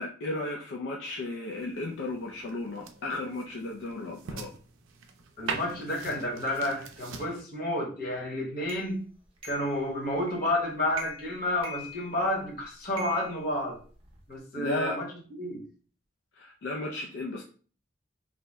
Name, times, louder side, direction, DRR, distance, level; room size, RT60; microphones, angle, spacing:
voice 1, 0.0-4.5 14.6-15.0 16.4-17.4, left 2 dB, 70° left, 0 dB, 0.4 m, -34 dB
sound 1, 1.5-7.4, right 5 dB, 90° right, 0.4 m, -42 dB
voice 2, 5.4-9.0 9.4-13.8 14.3-15.1 15.4-15.6, left 1 dB, 50° left, -1 dB, 1.0 m, -30 dB
sound 2, 8.7-8.8 9.4-9.8 10.3-10.6 10.9-11.3 11.6-12.4 13.0-14.2, equal, 30° right, 0.5 m, -43 dB
2.6 x 2.0 x 3.3 m, 0.40 s
head